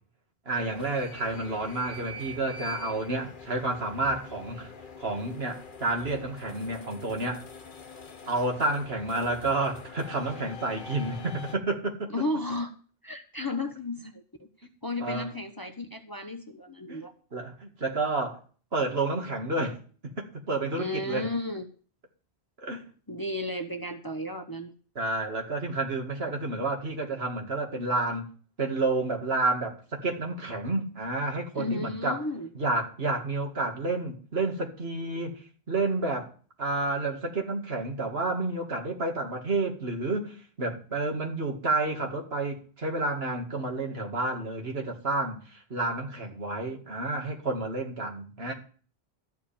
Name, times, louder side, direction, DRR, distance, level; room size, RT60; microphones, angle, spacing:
sound 1, 0.5-11.6, left 2 dB, 50° left, 1.1 m, -45 dB
voice 1, 0.5-4.7 5.0-7.5 8.3-12.1 15.0-15.3 16.9-17.0 17.3-18.4 18.7-21.3 22.6-22.9 25.0-28.3 28.6-32.2 32.5-36.3 36.6-48.5, right 2 dB, 70° right, 2.4 m, -30 dB
voice 2, 12.1-12.7 13.0-17.1 20.7-21.7 23.1-24.7 31.5-32.5, left 2 dB, 20° left, 0.9 m, -33 dB
13.0 x 5.0 x 8.8 m
omnidirectional pair, 1.1 m